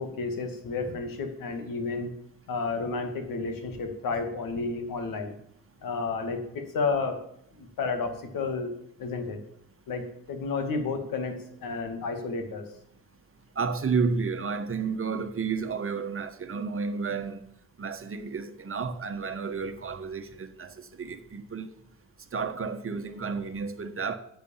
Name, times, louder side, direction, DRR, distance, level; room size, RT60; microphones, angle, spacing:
voice 1, 0.0-2.1 2.5-5.3 5.8-7.2 7.5-8.7 9.0-9.4 9.9-12.6, left 4 dB, 65° left, 2.5 m, -31 dB
voice 2, 13.5-17.5 17.8-21.7 22.3-24.2, right 5 dB, 35° right, 1.4 m, -31 dB
10.0 x 8.5 x 7.3 m
hypercardioid pair, 60°, 36 cm